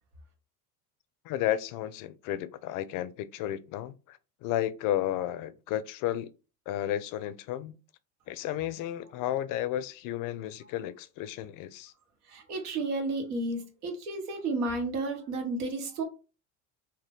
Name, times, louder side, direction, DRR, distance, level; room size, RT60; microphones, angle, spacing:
voice 1, 1.3-6.3 6.7-7.7 8.3-11.9, left 12 dB, 50° left, 0.4 m, -33 dB
voice 2, 12.3-16.0, right 2 dB, 85° right, 1.0 m, -32 dB
2.8 x 2.2 x 3.4 m
hypercardioid pair, 85°, 44 cm